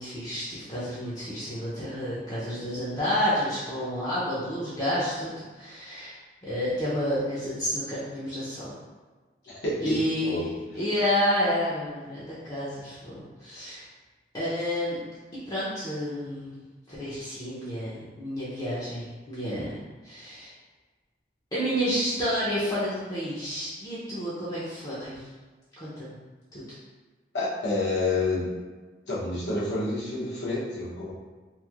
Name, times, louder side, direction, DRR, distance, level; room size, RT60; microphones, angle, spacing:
voice 1, 0.0-8.7 9.8-13.9 14.3-15.0 15.5-19.7 20.0-20.5 21.5-25.3 25.8-26.1 26.5-26.6, equal, 20° left, -10 dB, 0.6 m, -30 dB
voice 2, 9.5-9.9 10.2-10.5 27.3-28.5 29.1-31.1, left 2 dB, 75° left, -8 dB, 0.8 m, -28 dB
3.0 x 2.6 x 2.4 m, 1.4 s
head